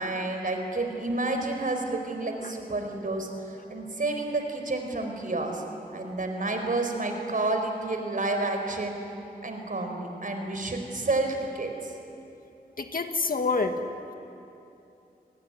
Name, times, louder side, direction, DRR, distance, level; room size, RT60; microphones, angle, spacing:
voice 1, 0.0-5.6 5.9-9.0 9.4-11.7, right 2 dB, 55° right, 4 dB, 4.7 m, -30 dB
voice 2, 12.8-13.8, left 3 dB, 60° left, 5 dB, 2.0 m, -27 dB
29.5 x 20.5 x 9.7 m, 2.8 s
wide cardioid pair, 75°, 16 cm